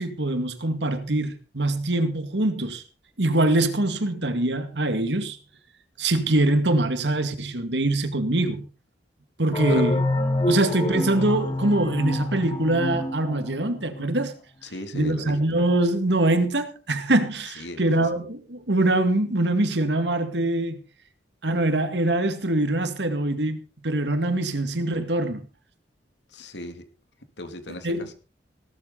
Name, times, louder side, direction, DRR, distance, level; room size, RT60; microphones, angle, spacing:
voice 1, 0.0-2.8 3.2-5.4 6.0-8.7 9.4-10.0 10.5-14.3 14.9-20.8 21.4-23.6 23.8-25.5 27.8-28.0, right 2 dB, 75° right, 2.2 m, -23 dB
sound 1, 9.5-14.0, left 1 dB, 30° left, 1.9 m, -27 dB
voice 2, 14.6-15.3 17.6-17.9 26.3-26.8 27.4-28.1, left 1 dB, 70° left, 2.7 m, -36 dB
17.5 x 13.0 x 4.1 m
head